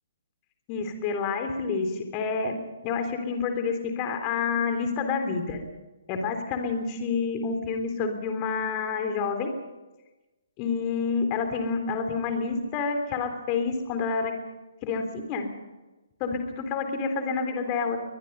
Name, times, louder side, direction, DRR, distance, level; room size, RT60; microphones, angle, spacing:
voice 1, 0.7-2.6 2.8-5.6 6.1-9.5 10.6-14.3 14.8-15.5 16.2-18.0, left 5 dB, 25° left, 6 dB, 3.5 m, -28 dB
22.5 x 21.0 x 5.5 m, 1.1 s
figure-of-eight pair, 130°, 0 cm